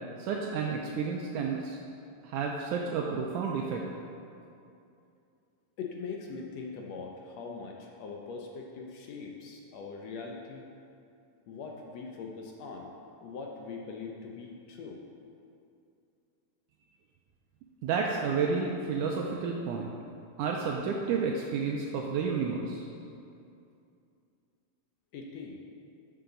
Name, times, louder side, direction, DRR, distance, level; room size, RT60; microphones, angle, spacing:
voice 1, 0.2-1.8 2.2-3.8 17.8-19.9 20.4-22.9, right 5 dB, 80° right, 0 dB, 1.9 m, -31 dB
voice 2, 5.8-10.6 11.5-12.9 13.2-15.0 25.1-25.6, left 4 dB, 75° left, 0 dB, 1.6 m, -41 dB
13.5 x 6.8 x 3.9 m, 2.6 s
omnidirectional pair, 3.9 m